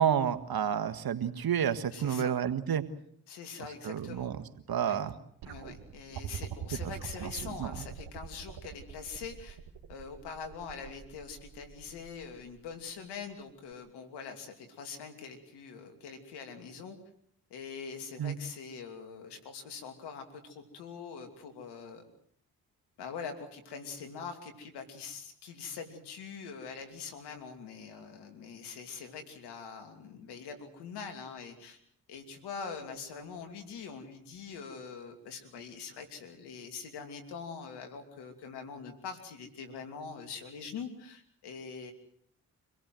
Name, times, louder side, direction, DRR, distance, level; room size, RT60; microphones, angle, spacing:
voice 1, 0.0-2.8 3.8-4.4 4.7-5.1 7.2-7.8 18.2-18.4, right 9 dB, 65° right, 9 dB, 1.8 m, -30 dB
voice 2, 1.9-2.3 3.3-4.3 4.8-5.0 5.5-9.6 9.9-17.0 17.5-22.0 23.0-31.8 32.1-41.9, left 5 dB, 85° left, 7 dB, 2.9 m, -43 dB
sound 1, 5.4-12.6 13.7-13.8, right 9 dB, 80° right, 2.2 m, -43 dB
26.0 x 17.5 x 7.8 m, 0.67 s
supercardioid pair, 45°, 39 cm